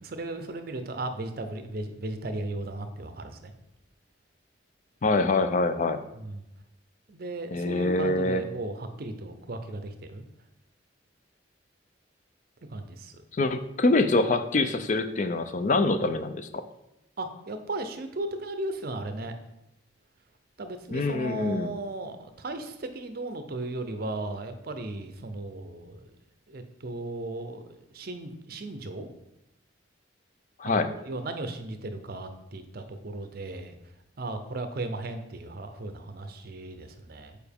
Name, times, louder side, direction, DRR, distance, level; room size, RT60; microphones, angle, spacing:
voice 1, 0.0-3.5 6.1-6.4 7.1-10.2 12.6-13.2 17.2-19.3 20.6-26.1 26.5-29.1 30.6-33.7 34.2-37.4, right 2 dB, 50° right, 8 dB, 0.6 m, -36 dB
voice 2, 5.0-6.0 7.5-8.4 13.3-16.6 20.9-21.7 30.6-30.9, left 2 dB, 40° left, 10 dB, 0.4 m, -25 dB
6.9 x 4.5 x 3.5 m, 0.87 s
head